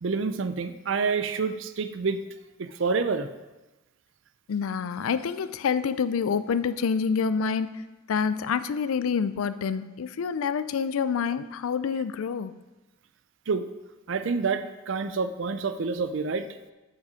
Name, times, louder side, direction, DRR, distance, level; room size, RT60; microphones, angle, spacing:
voice 1, 0.0-2.2 2.6-3.3 13.5-13.6 14.1-16.5, right 4 dB, 65° right, 10 dB, 0.5 m, -28 dB
voice 2, 4.5-7.7 8.1-12.5, left 6 dB, 85° left, 13 dB, 0.4 m, -27 dB
6.7 x 5.8 x 5.1 m, 1.1 s
head